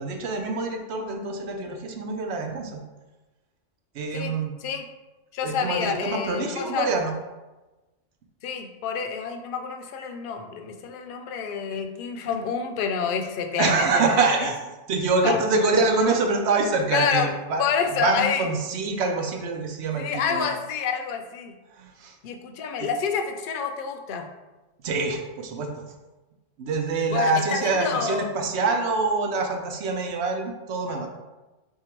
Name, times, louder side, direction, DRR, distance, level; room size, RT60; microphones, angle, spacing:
voice 1, 0.0-2.8 3.9-4.5 5.4-7.1 13.6-17.6 18.0-20.5 21.7-22.2 22.8-22.9 24.8-25.7 26.6-31.1, right 3 dB, 70° right, 3 dB, 0.9 m, -25 dB
voice 2, 5.3-6.9 8.4-14.5 15.2-15.4 15.7-15.8 16.9-17.3 17.6-18.5 20.0-21.5 22.2-24.3 27.1-28.4, left 6 dB, 60° left, 5 dB, 0.6 m, -28 dB
3.6 x 2.7 x 4.4 m, 1.1 s
omnidirectional pair, 1.2 m